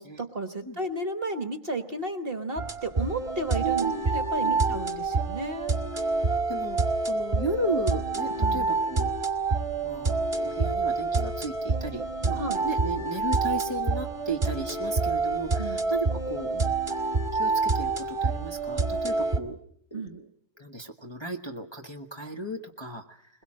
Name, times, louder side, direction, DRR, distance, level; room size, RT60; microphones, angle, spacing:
voice 1, 0.0-5.7 8.4-8.7 12.4-12.6 15.6-15.8 19.9-20.2, right 2 dB, 40° right, 8 dB, 1.3 m, -33 dB
sound 1, 2.6-19.4, right 3 dB, 20° right, 1.8 m, -27 dB
voice 2, 3.6-4.1 4.4-4.8 6.5-6.8 7.0-9.1 9.8-16.7 17.3-19.6 19.9-20.3 20.6-23.2, right 2 dB, 20° left, 2 dB, 1.1 m, -35 dB
21.5 x 21.5 x 7.5 m, 0.67 s
omnidirectional pair, 1.7 m